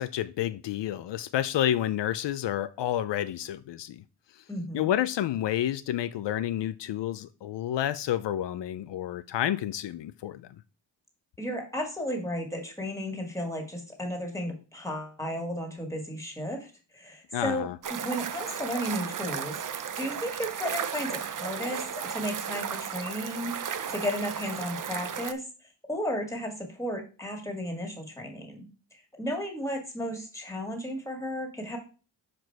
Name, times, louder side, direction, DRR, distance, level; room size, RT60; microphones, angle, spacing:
voice 1, 0.0-4.0 4.7-10.6 17.3-17.8, left 12 dB, 80° left, 0.5 m, -30 dB
voice 2, 4.5-4.9 11.4-25.4 25.9-28.6 28.9-31.8, equal, 5° left, 2.0 m, -34 dB
sound 1, 17.8-25.3, right 8 dB, 50° right, 0.6 m, -34 dB
6.0 x 5.0 x 4.6 m
wide cardioid pair, 125°, 42 cm